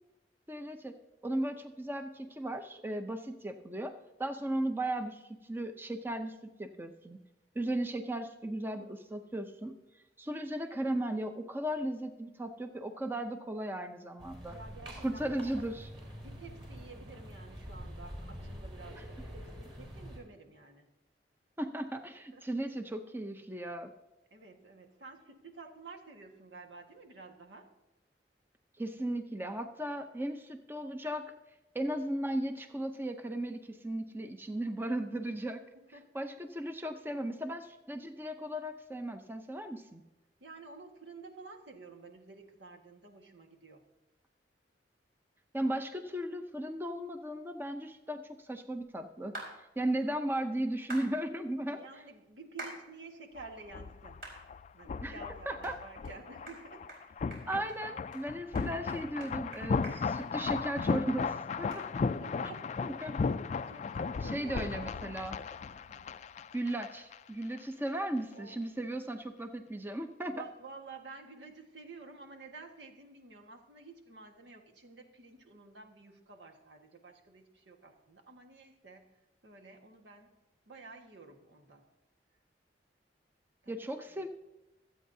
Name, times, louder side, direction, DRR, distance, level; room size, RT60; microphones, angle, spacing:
voice 1, 0.5-1.0 1.2-3.9 4.2-7.2 7.5-9.8 10.2-14.6 15.0-15.9 21.6-23.9 28.8-31.3 31.7-35.6 36.1-40.0 45.5-51.8 55.0-55.2 55.5-55.7 57.5-61.8 62.8-63.2 64.2-65.4 66.5-70.4 83.7-84.3, right 1 dB, 10° right, 7 dB, 0.6 m, -36 dB
sound 1, 14.2-20.2, equal, 30° right, 4.2 m, -46 dB
voice 2, 14.4-15.7 16.2-20.9 22.3-22.4 24.3-27.7 35.7-36.1 40.4-43.8 51.6-54.2 54.7-56.8 57.8-57.9 61.9-63.1 63.7-65.0 65.9-66.1 68.3-68.9 69.6-69.8 70.3-79.1 79.4-80.3 80.7-81.8 83.6-83.7 84.1-84.3, right 3 dB, 85° right, 3 dB, 1.6 m, -51 dB
sound 2, 49.3-49.5 50.9-51.1 52.6-52.8 53.3-53.4 54.2-54.4 54.9-55.0 55.6-55.7 56.0-56.1 56.5-56.6 56.9-57.0 57.3-57.8 58.1-58.2 58.5-60.9 61.2-61.3 61.7-61.8, right 2 dB, 55° right, 4.7 m, -45 dB
sound 3, 53.4-67.2 67.4-67.6, left 5 dB, 40° left, 0.3 m, -36 dB
25.0 x 8.5 x 2.7 m, 1.0 s
head